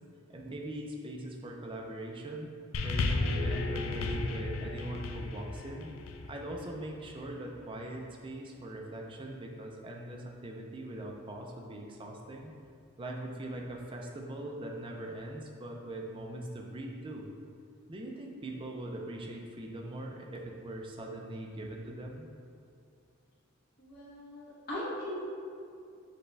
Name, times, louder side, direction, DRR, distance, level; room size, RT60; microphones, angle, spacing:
voice 1, 0.3-2.5 2.8-5.9 6.3-12.5 13.0-17.3 17.9-22.3, right 1 dB, 25° right, 1 dB, 0.4 m, -41 dB
sound 1, 2.7-7.3 8.1-8.2, left 3 dB, 80° left, 0.3 m, -34 dB
voice 2, 23.8-25.2, left 1 dB, 45° left, -8 dB, 0.8 m, -39 dB
6.6 x 2.2 x 3.2 m, 2.4 s
head